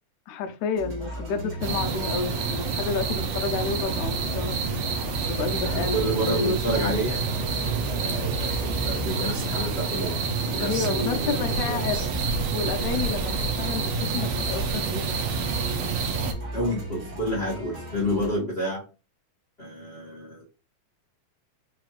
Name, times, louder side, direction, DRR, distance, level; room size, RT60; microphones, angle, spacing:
voice 1, 0.3-4.8 5.3-7.0 10.6-12.1 12.5-15.2, left 5 dB, 90° left, 6 dB, 2.0 m, -30 dB
sound 1, 0.7-18.4, equal, 40° right, 1.6 m, -37 dB
sound 2, 1.6-16.3, right 4 dB, 80° right, 1.2 m, -28 dB
voice 2, 5.6-7.2 8.0-12.1 13.3-13.4 16.5-18.8 19.6-20.4, equal, 50° left, -5 dB, 0.7 m, -30 dB
4.9 x 3.1 x 2.3 m, 0.32 s
omnidirectional pair, 3.3 m